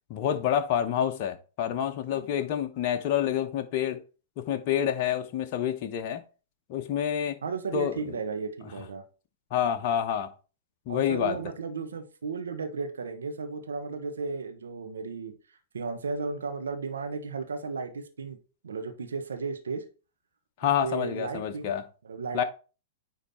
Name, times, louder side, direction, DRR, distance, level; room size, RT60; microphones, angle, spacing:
voice 1, 0.1-4.0 4.4-6.2 6.7-7.4 7.7-7.9 9.5-10.3 10.9-11.4 20.6-21.8 22.3-22.4, left 9 dB, 45° left, 0.9 m, -28 dB
voice 2, 7.4-9.0 10.9-15.3 15.7-18.4 18.6-19.8 20.8-21.7 22.0-22.4, right 4 dB, 85° right, 1.3 m, -34 dB
9.7 x 3.3 x 4.2 m
hypercardioid pair, 115°, 0 cm